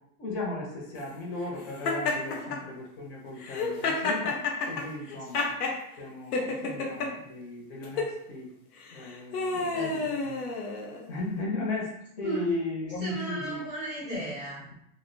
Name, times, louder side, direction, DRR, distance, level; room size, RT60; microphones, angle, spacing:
voice 1, 0.2-5.5 6.0-8.5 8.9-9.9 10.7-10.8 11.1-13.6 14.1-14.2, left 2 dB, 45° left, -2 dB, 0.5 m, -36 dB
Laughter, 1.8-2.6 3.4-5.8 6.3-7.1 7.8-8.1 8.9-11.1, left 3 dB, 90° left, 0.7 m, -30 dB
voice 2, 9.5-10.4 11.1-11.2 12.2-12.4 13.0-14.6, right 2 dB, 15° right, -7 dB, 0.5 m, -37 dB
2.5 x 2.0 x 2.5 m, 0.76 s
supercardioid pair, 160°, 45 cm